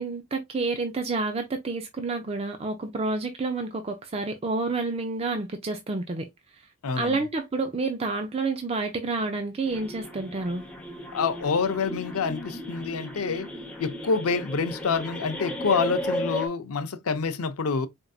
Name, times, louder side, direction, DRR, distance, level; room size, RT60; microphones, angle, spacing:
voice 1, 0.0-6.3 7.0-10.6, right 3 dB, 30° right, 0.5 m, -29 dB
voice 2, 6.8-7.2 11.1-13.5 13.8-17.9, left 5 dB, 80° left, 0.6 m, -27 dB
sound 1, 9.6-16.5, left 1 dB, 5° left, 0.8 m, -35 dB
4.4 x 2.6 x 2.3 m
head